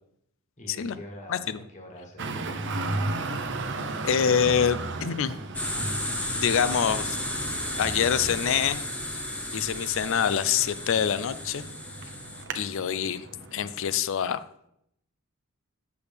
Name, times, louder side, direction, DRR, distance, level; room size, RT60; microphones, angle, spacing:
voice 1, 0.6-3.0, left 1 dB, 35° left, 1 dB, 1.3 m, -45 dB
voice 2, 1.3-1.6 4.0-5.3 6.4-7.2 7.8-8.8 9.5-11.6 12.5-13.3 13.5-14.4, left 8 dB, 65° left, 15 dB, 0.4 m, -25 dB
Traffic noise roadway noise, 2.2-14.0, right 2 dB, 60° right, 0.7 m, -36 dB
sound 1, 5.5-12.4, left 1 dB, 5° left, 0.9 m, -33 dB
8.1 x 6.9 x 3.4 m, 0.77 s
head